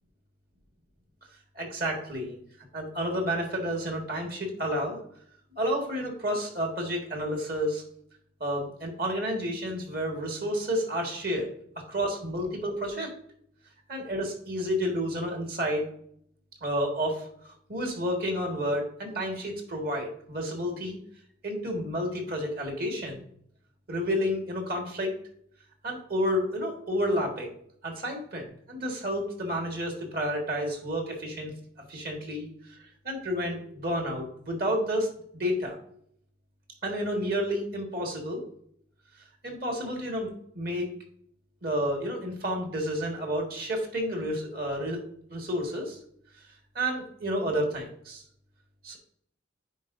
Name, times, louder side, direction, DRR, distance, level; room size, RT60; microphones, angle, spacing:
voice 1, 1.5-2.4 2.7-5.0 5.6-7.8 8.4-11.5 11.7-13.1 13.9-15.9 16.6-21.0 21.4-23.2 23.9-25.1 25.8-27.5 27.8-31.5 31.9-35.1 35.3-35.8 36.8-38.4 39.4-40.9 41.6-45.0 45.3-46.0 46.7-48.2 48.8-49.0, equal, 50° right, 1 dB, 1.6 m, -30 dB
10.0 x 4.6 x 2.6 m, 0.67 s
head